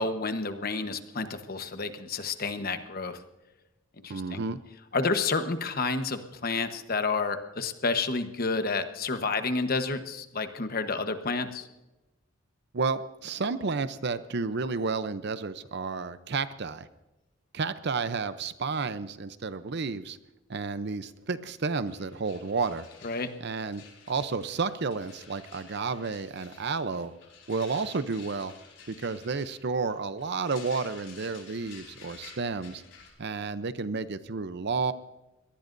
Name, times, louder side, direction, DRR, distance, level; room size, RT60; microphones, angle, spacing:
voice 1, 0.0-3.2 4.0-4.5 4.9-11.7 23.0-23.3, left 4 dB, 50° left, 8 dB, 1.1 m, -30 dB
voice 2, 4.1-4.6 12.7-16.9 17.5-20.2 20.5-22.9 23.4-27.1 27.5-28.5 28.9-32.8 33.2-34.9, right 4 dB, 55° right, 13 dB, 0.7 m, -31 dB
sound 1, 21.6-21.7 21.9-33.1, left 6 dB, 70° left, 4.8 m, -52 dB
23.5 x 18.5 x 2.6 m, 1.0 s
head